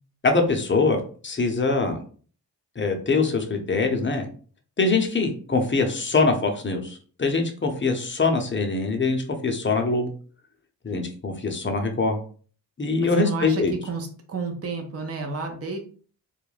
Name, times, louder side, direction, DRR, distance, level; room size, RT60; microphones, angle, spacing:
voice 1, 0.2-2.0 2.8-4.3 4.8-10.1 10.8-12.2 12.8-13.7, left 3 dB, 25° left, 4 dB, 0.6 m, -23 dB
voice 2, 13.0-15.8, right 4 dB, 30° right, 3 dB, 0.6 m, -31 dB
2.4 x 2.1 x 3.1 m, 0.42 s
cardioid pair, 60°, 45 cm